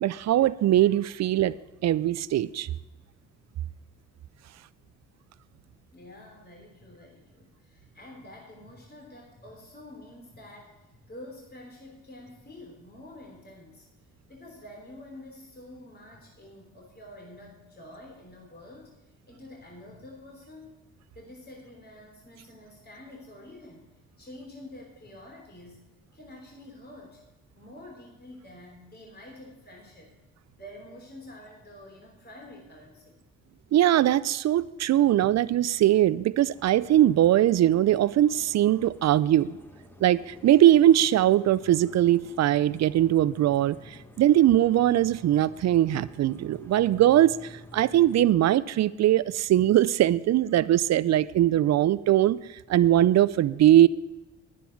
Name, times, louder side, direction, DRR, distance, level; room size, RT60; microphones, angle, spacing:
voice 1, 0.0-1.5 1.8-2.7 33.7-39.6 40.0-43.8 44.2-47.3 47.7-52.4 52.7-53.9, right 12 dB, 55° right, 19 dB, 0.6 m, -21 dB
voice 2, 5.9-13.8 14.3-18.9 19.3-20.7 21.1-23.9 24.2-25.8 26.1-27.2 27.5-30.1 30.6-33.2, left 1 dB, 30° left, 0 dB, 3.4 m, -47 dB
sound 1, 36.5-48.3, left 1 dB, 5° left, 1.7 m, -51 dB
11.0 x 10.0 x 4.6 m, 1.1 s
hypercardioid pair, 55°, 33 cm